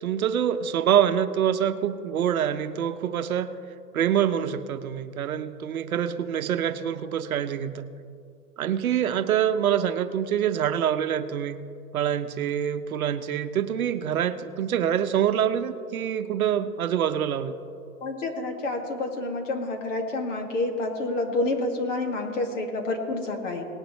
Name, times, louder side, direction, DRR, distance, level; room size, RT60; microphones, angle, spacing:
voice 1, 0.0-3.5 3.9-7.9 8.6-11.6 11.9-17.6, right 9 dB, 65° right, 10 dB, 0.8 m, -25 dB
voice 2, 18.0-23.6, left 2 dB, 55° left, 3 dB, 2.1 m, -28 dB
19.0 x 10.0 x 3.1 m, 2.3 s
hypercardioid pair, 165°, 45 cm